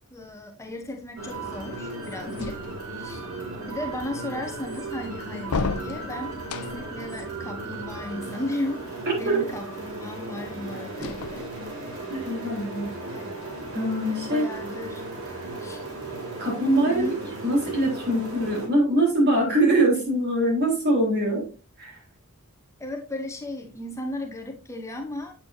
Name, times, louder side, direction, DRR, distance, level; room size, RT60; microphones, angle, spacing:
voice 1, 0.1-2.5 3.0-3.2 3.6-8.8 9.2-11.5 13.1-13.3 14.2-15.1 15.6-15.8 16.9-17.2 22.8-25.3, left 1 dB, 15° left, 3 dB, 0.9 m, -35 dB
sound 1, 1.2-18.7, right 2 dB, 85° right, 2.9 m, -36 dB
sound 2, 2.4-3.1 5.4-7.0 10.9-11.9, left 4 dB, 80° left, 0.6 m, -33 dB
voice 2, 9.1-9.4 12.1-13.0 13.7-14.5 16.4-17.0 17.4-21.5 21.8-22.0, right 1 dB, 50° right, -2 dB, 4.0 m, -23 dB
8.2 x 7.4 x 2.7 m, 0.33 s
head